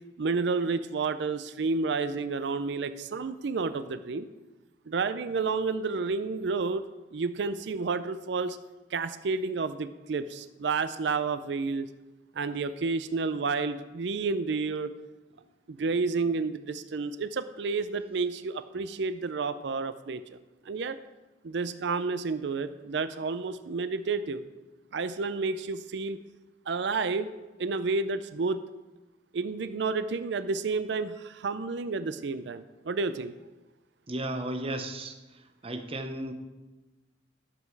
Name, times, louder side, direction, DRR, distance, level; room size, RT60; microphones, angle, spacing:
voice 1, 0.2-4.3 4.9-6.8 7.1-8.6 8.9-11.9 12.4-14.9 15.7-20.2 20.7-21.0 21.4-24.4 24.9-26.2 26.7-27.3 27.6-28.6 29.3-33.3, right 4 dB, 65° right, 12 dB, 0.5 m, -30 dB
voice 2, 34.1-35.2 35.6-36.3, right 1 dB, 30° right, 7 dB, 0.9 m, -34 dB
11.5 x 7.6 x 4.6 m, 1.1 s
head